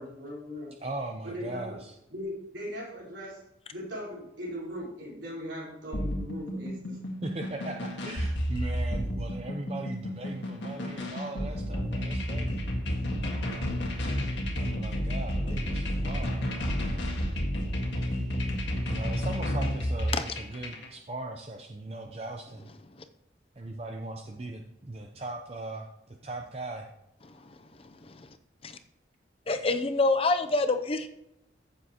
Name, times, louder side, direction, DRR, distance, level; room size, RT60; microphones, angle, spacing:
voice 1, 0.0-0.8 1.2-1.8 2.1-3.4 3.7-7.0, equal, 80° right, -5 dB, 4.2 m, -39 dB
voice 2, 0.8-2.0 7.2-12.7 14.6-16.4 18.0-18.1 18.8-22.7 23.6-26.9, right 2 dB, 30° right, 2 dB, 0.6 m, -39 dB
sound 1, 5.9-20.9, equal, 75° left, 1.8 m, -31 dB
voice 3, 29.5-31.1, left 3 dB, 30° left, 9 dB, 0.6 m, -26 dB
14.5 x 7.0 x 2.9 m, 0.84 s
head